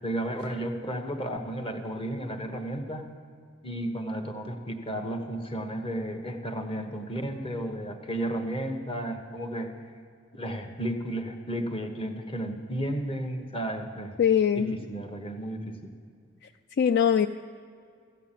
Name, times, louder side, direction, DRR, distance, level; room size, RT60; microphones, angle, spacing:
voice 1, 0.0-3.1 3.6-9.7 10.3-14.2 14.5-15.9, right 1 dB, 30° left, 5 dB, 1.2 m, -33 dB
voice 2, 14.2-14.7 16.8-17.3, left 8 dB, 55° left, 9 dB, 0.3 m, -21 dB
14.5 x 8.2 x 7.5 m, 2.2 s
head